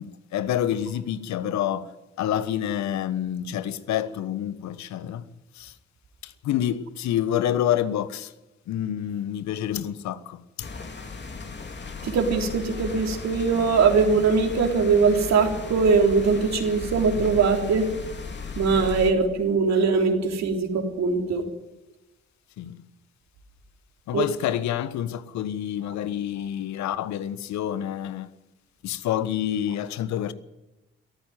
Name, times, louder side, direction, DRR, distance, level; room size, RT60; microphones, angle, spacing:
voice 1, 0.0-1.9 2.2-5.2 5.6-5.7 6.2-8.3 8.7-10.7 22.6-22.8 24.1-28.3 28.8-30.3, left 11 dB, 65° left, 1.3 m, -28 dB
sound 1, 10.6-19.1, left 5 dB, 35° left, 2.8 m, -36 dB
voice 2, 12.0-17.9 18.6-21.4 24.1-24.2 26.4-26.5, right 5 dB, 60° right, 3.7 m, -21 dB
22.5 x 14.5 x 9.3 m
hypercardioid pair, 40°, 30 cm